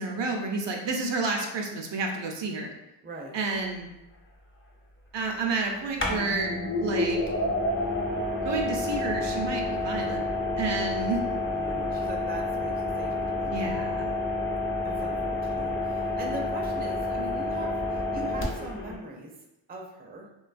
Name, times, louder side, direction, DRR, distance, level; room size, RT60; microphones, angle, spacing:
voice 1, 0.0-2.7 3.3-3.9 5.1-6.5 6.8-7.2 8.4-10.3 10.6-11.2 13.5-14.2, right 3 dB, 70° right, 1 dB, 0.5 m, -30 dB
voice 2, 3.0-3.4 11.5-13.8 14.8-19.3 19.7-20.3, right 1 dB, 20° right, -1 dB, 0.4 m, -41 dB
sound 1, 3.6-3.7 6.0-19.0, left 2 dB, 30° left, 0.5 m, -29 dB
2.6 x 2.2 x 2.4 m, 0.93 s
wide cardioid pair, 60°, 44 cm